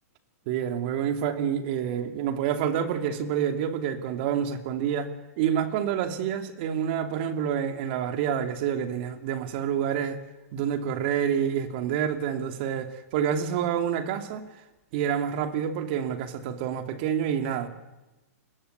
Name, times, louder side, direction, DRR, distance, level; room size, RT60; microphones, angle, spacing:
voice 1, 0.5-10.2 10.5-14.5 14.9-17.7, right 8 dB, 40° right, 2.9 m, -28 dB
29.5 x 22.5 x 8.2 m
hypercardioid pair, 160°, 8 cm